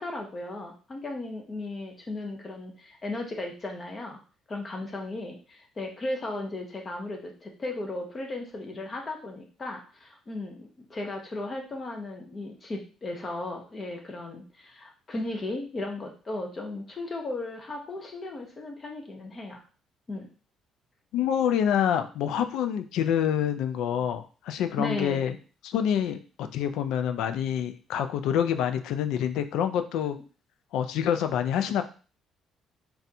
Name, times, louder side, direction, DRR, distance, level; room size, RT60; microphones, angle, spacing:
voice 1, 0.0-4.2 4.5-19.6 20.1-20.3 24.8-25.2 30.1-30.2, left 2 dB, 25° left, 3 dB, 0.5 m, -36 dB
voice 2, 21.1-25.4 25.6-30.2 30.7-31.8, left 9 dB, 85° left, 9 dB, 0.3 m, -27 dB
4.0 x 2.3 x 2.6 m, 0.37 s
cardioid pair, 175°, 0 cm